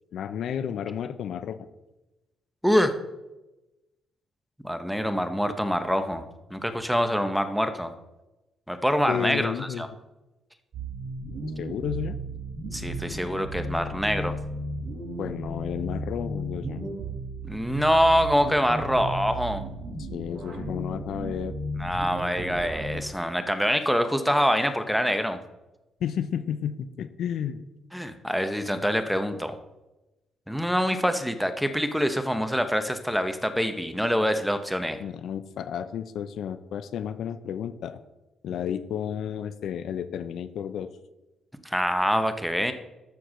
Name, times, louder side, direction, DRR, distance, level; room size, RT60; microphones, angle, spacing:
voice 1, 0.1-1.7 9.1-9.9 11.6-12.2 15.2-16.8 20.0-21.5 26.0-27.6 35.0-38.0 38.4-40.9, left 8 dB, 70° left, 12 dB, 0.6 m, -32 dB
voice 2, 2.6-3.0 4.6-6.2 6.5-7.9 8.7-9.9 12.7-14.3 17.4-19.6 21.8-25.4 27.9-29.6 30.5-35.0 41.6-42.7, equal, ahead, 9 dB, 1.0 m, -25 dB
sound 1, 10.7-23.0, right 1 dB, 50° right, 4.2 m, -34 dB
13.5 x 4.7 x 6.4 m, 1.0 s
cardioid pair, 90°, 0 cm